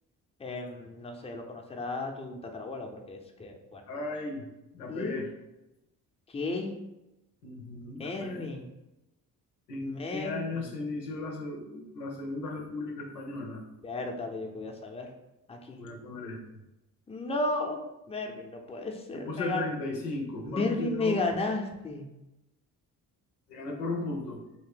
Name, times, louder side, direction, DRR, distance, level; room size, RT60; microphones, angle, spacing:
voice 1, 0.4-3.8 4.9-5.2 6.3-6.8 8.0-8.7 9.8-10.7 13.8-15.1 15.5-15.8 17.1-17.8 18.1-19.6 20.4-22.1, left 2 dB, 15° left, 2 dB, 0.6 m, -34 dB
voice 2, 3.9-4.4 4.7-5.3 7.4-8.5 9.7-13.6 15.8-16.4 19.1-21.2 23.5-24.4, left 2 dB, 85° left, 1 dB, 0.6 m, -36 dB
3.2 x 2.8 x 4.6 m, 0.94 s
figure-of-eight pair, 40°, 47 cm